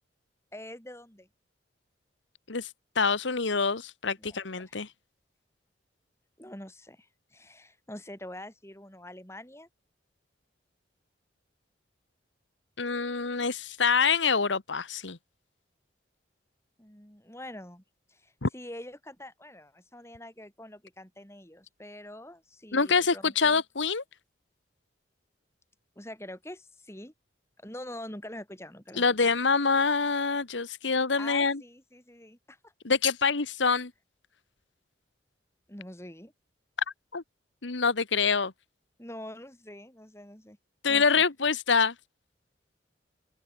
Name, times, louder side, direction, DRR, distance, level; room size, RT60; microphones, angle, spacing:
voice 1, 0.5-1.3 4.2-4.8 6.4-9.7 16.8-17.8 18.1-23.6 26.0-27.1 27.6-29.3 31.2-32.7 33.6-33.8 35.7-36.3 39.0-40.6 40.9-41.2, left 1 dB, 15° left, 7.1 m, -45 dB
voice 2, 2.9-4.9 12.8-15.2 18.4-18.5 22.7-24.0 29.0-31.6 32.8-33.9 37.1-37.2 37.6-38.5 40.8-41.9, left 5 dB, 85° left, 1.4 m, -25 dB
open air
head